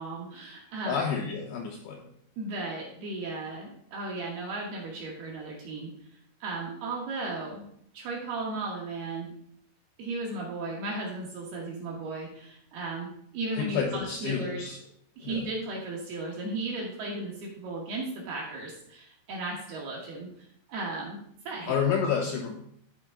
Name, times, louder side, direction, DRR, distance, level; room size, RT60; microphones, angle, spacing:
voice 1, 0.0-1.0 2.4-5.9 6.4-7.6 7.9-9.3 10.0-14.6 15.2-21.2 21.5-21.7, right 2 dB, 65° right, -2 dB, 2.6 m, -35 dB
voice 2, 0.9-2.1 13.6-14.8 15.2-15.4 21.7-22.5, left 7 dB, 80° left, 1 dB, 2.5 m, -29 dB
13.5 x 4.6 x 3.7 m, 0.68 s
omnidirectional pair, 5.8 m